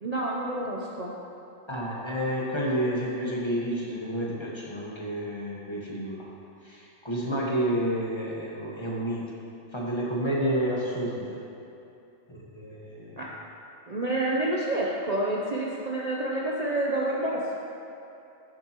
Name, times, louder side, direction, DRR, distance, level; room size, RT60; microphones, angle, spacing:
voice 1, 0.0-1.2 13.2-13.3 13.9-17.5, right 1 dB, 40° right, -4 dB, 0.7 m, -28 dB
voice 2, 1.7-6.3 6.6-9.3 9.7-11.4 12.3-13.2, equal, 25° left, -5 dB, 1.2 m, -30 dB
10.5 x 7.5 x 2.9 m, 2.8 s
omnidirectional pair, 1.2 m